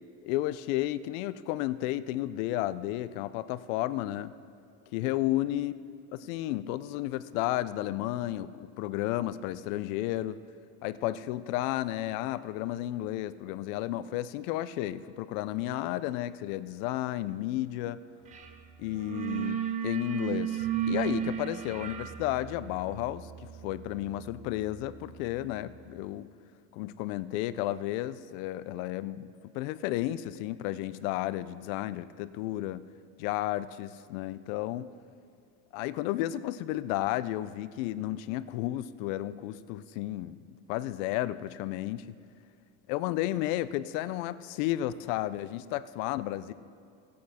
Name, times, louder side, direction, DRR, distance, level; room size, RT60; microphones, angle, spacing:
voice 1, 0.2-4.3 4.9-5.7 6.1-10.4 10.8-18.0 18.8-23.3 23.6-26.3 26.7-32.8 33.2-34.9 35.7-40.4 40.7-42.1 42.9-46.5, left 14 dB, 85° left, 15 dB, 0.5 m, -32 dB
sound 1, 18.3-18.6 18.8-25.5, right 9 dB, 20° right, 0.4 m, -35 dB
16.0 x 8.4 x 4.2 m, 2.3 s
cardioid pair, 175°, 39 cm